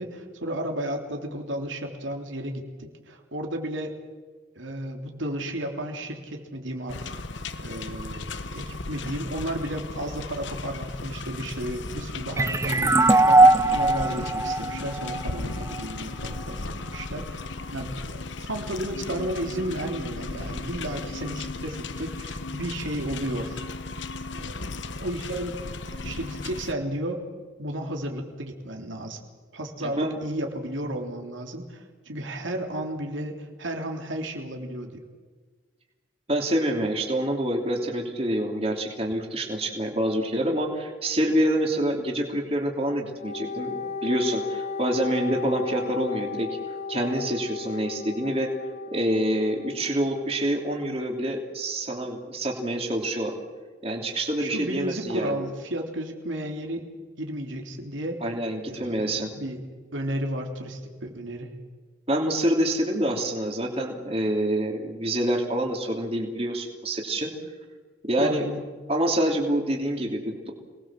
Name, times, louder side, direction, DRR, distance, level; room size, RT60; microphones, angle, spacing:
voice 1, 0.0-3.9 4.5-17.4 17.7-23.6 24.3-25.6 26.0-27.2 27.6-29.2 29.5-35.0 54.4-56.8 57.2-58.2 58.7-59.6 59.9-61.5 68.2-68.6, right 1 dB, 80° right, 3 dB, 3.3 m, -33 dB
sound 1, 6.9-26.7, left 3 dB, 70° left, 1.1 m, -36 dB
sound 2, 12.4-15.8, right 2 dB, 15° right, 0.7 m, -19 dB
voice 2, 29.8-30.2 36.3-46.5 46.9-48.5 48.9-53.3 53.8-55.4 58.2-59.3 62.1-67.3 68.0-68.5 68.9-70.5, right 1 dB, 30° right, 1 dB, 3.1 m, -26 dB
Wind instrument woodwind instrument, 43.2-50.9, left 4 dB, 35° left, 1.9 m, -35 dB
27.0 x 20.0 x 7.6 m, 1.4 s
head